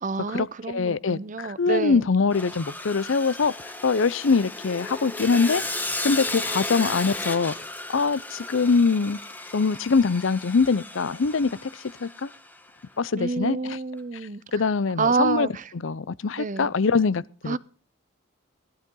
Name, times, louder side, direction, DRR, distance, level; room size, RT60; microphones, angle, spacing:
voice 1, 0.0-2.1 13.2-14.4 15.0-15.6 16.4-16.7 17.5-17.6, right 4 dB, 35° right, 0.6 m, -28 dB
voice 2, 0.7-3.5 3.8-5.6 6.0-7.5 7.9-9.2 9.5-11.7 12.0-12.3 13.0-13.8 14.5-15.5 15.8-17.6, left 4 dB, 65° left, 0.6 m, -23 dB
Sawing, 2.3-12.6, left 2 dB, 10° left, 1.2 m, -34 dB
17.5 x 12.0 x 3.8 m
head